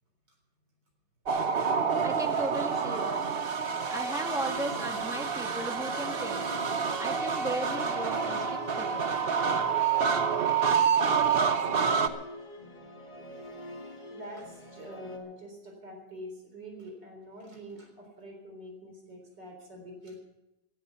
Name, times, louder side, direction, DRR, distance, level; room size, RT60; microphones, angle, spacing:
sound 1, 1.3-12.1, right 6 dB, 45° right, 0.9 m, -28 dB
voice 1, 2.0-3.2 3.9-6.5 7.0-9.0, right 1 dB, ahead, 3 dB, 1.8 m, -36 dB
Musical instrument, 3.6-15.2, equal, 25° left, 1.9 m, -43 dB
voice 2, 14.1-20.1, equal, 80° right, 2 dB, 4.6 m, -45 dB
16.5 x 12.5 x 5.7 m, 0.93 s
omnidirectional pair, 1.9 m